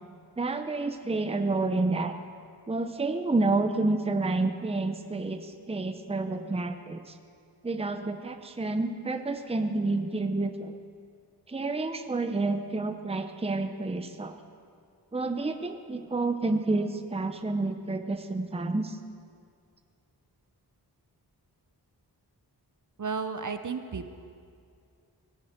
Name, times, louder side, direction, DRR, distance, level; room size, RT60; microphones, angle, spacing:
voice 1, 0.4-2.1 2.7-7.0 7.6-10.7 11.5-14.4 15.1-19.0, right 3 dB, 15° right, 7 dB, 0.7 m, -29 dB
voice 2, 23.0-24.1, right 5 dB, 50° right, 9 dB, 0.8 m, -33 dB
18.0 x 16.5 x 4.5 m, 2.3 s
wide cardioid pair, 105°, 39 cm